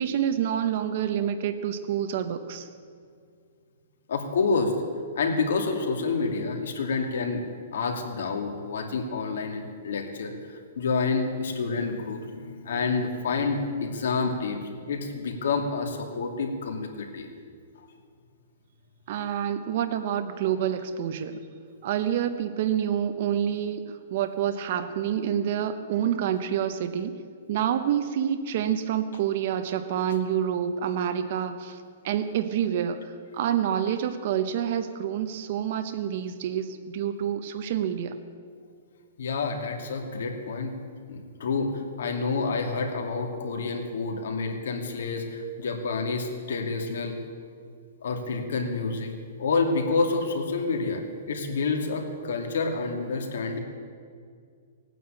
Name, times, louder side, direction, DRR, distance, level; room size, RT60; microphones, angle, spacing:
voice 1, 0.0-2.7 19.1-21.4 21.8-27.2 27.5-31.8 32.0-38.1, right 9 dB, 40° right, 8 dB, 0.8 m, -28 dB
voice 2, 4.1-4.7 5.2-7.4 7.7-17.3 39.2-40.8 41.1-47.2 48.0-49.1 49.4-51.0 51.3-53.6, left 4 dB, 70° left, 3 dB, 2.6 m, -28 dB
17.0 x 9.3 x 8.9 m, 2.2 s
hypercardioid pair, 170°, 0 cm